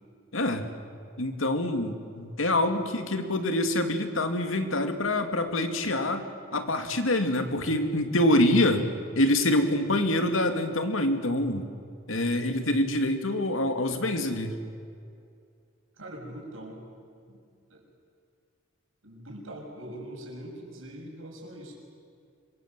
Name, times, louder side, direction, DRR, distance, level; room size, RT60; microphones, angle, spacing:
voice 1, 0.3-0.6 1.2-6.2 6.5-8.9 9.1-11.7 12.1-14.6, left 1 dB, 80° left, 7 dB, 2.4 m, -25 dB
voice 2, 16.0-16.8 17.2-17.4 17.7-17.8 19.0-21.7, right 1 dB, 85° right, 0 dB, 6.5 m, -42 dB
26.5 x 23.5 x 7.7 m, 2.4 s
head